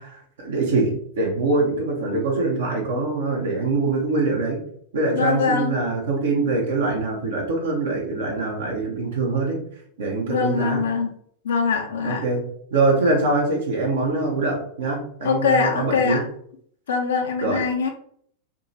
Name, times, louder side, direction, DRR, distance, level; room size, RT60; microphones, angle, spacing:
voice 1, 0.0-4.6 4.9-9.6 10.0-10.8 12.0-16.2 17.4-17.6, right 3 dB, 60° right, -1 dB, 0.9 m, -23 dB
voice 2, 5.1-5.8 10.3-11.1 11.4-12.2 15.2-16.2 16.9-17.9, left 5 dB, 65° left, 3 dB, 0.6 m, -22 dB
3.7 x 2.9 x 2.8 m, 0.63 s
figure-of-eight pair, 90°, 0 cm